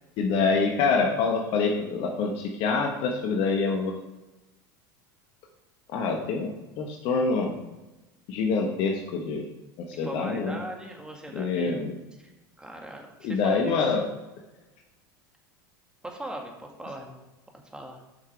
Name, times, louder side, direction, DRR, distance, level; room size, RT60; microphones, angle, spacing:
voice 1, 0.2-4.0 5.9-6.5 6.8-7.6 8.3-9.5 9.9-10.6 11.3-11.9 13.2-14.1, left 4 dB, 55° left, 2 dB, 1.2 m, -26 dB
voice 2, 10.0-11.9 12.6-13.9 16.0-17.2 17.7-18.0, right 1 dB, 10° right, 1 dB, 1.9 m, -39 dB
7.9 x 5.9 x 4.7 m, 1.0 s
hypercardioid pair, 90°, 11 cm